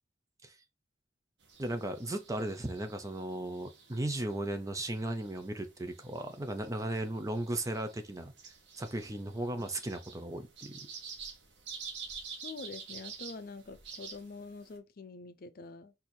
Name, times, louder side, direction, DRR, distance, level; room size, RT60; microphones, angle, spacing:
sound 1, 1.4-14.8, right 5 dB, 60° right, 1.2 m, -49 dB
voice 1, 1.6-8.3 8.8-10.8, right 1 dB, 15° right, 0.6 m, -36 dB
voice 2, 12.1-15.9, left 3 dB, 50° left, 0.5 m, -46 dB
4.3 x 2.7 x 4.3 m
head